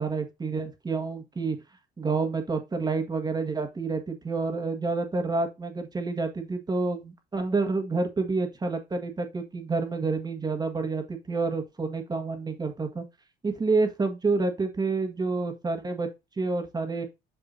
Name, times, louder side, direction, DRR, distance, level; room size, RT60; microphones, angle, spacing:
voice 1, 0.0-1.6 2.0-13.0 13.4-16.1 16.4-17.0, right 3 dB, 25° right, 1.6 m, -28 dB
8.1 x 5.3 x 2.6 m
cardioid pair, 110°, 17 cm